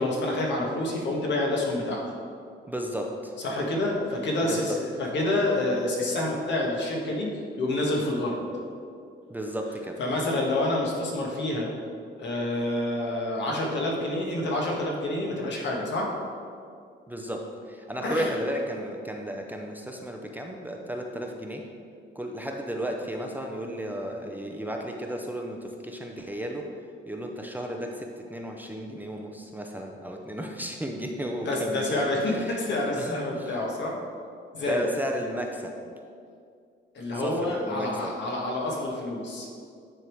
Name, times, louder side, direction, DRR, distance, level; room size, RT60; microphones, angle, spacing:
voice 1, 0.0-2.0 3.4-7.3 7.6-8.4 10.0-11.7 12.2-16.1 18.0-18.3 31.4-34.0 34.5-34.8 36.9-39.5, left 1 dB, 65° left, -2 dB, 1.6 m, -28 dB
voice 2, 2.7-3.3 4.4-4.8 9.3-10.0 17.1-21.6 22.1-26.7 27.1-32.6 33.0-33.2 34.7-35.8 37.1-38.1, equal, 10° right, 1 dB, 0.7 m, -33 dB
9.7 x 3.6 x 4.6 m, 2.3 s
cardioid pair, 90°, 20 cm